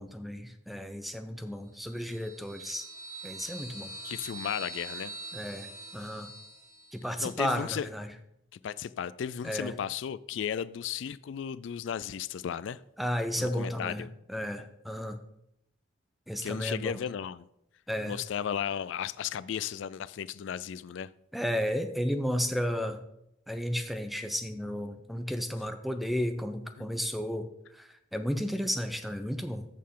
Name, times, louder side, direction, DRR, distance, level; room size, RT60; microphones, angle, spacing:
voice 1, 0.0-2.9 3.2-3.9 5.3-6.3 6.9-8.1 9.4-9.7 13.0-15.2 16.3-17.0 17.9-18.2 21.3-23.0 23.5-27.5 27.7-29.7, equal, ahead, 0.6 m, -33 dB
sound 1, 1.8-7.2, right 2 dB, 20° right, 4.3 m, -44 dB
voice 2, 4.0-5.2 7.2-7.9 8.6-12.8 13.4-14.1 16.4-17.5 18.1-21.1 26.8-26.9, left 8 dB, 70° left, 0.3 m, -35 dB
14.0 x 6.5 x 3.8 m
head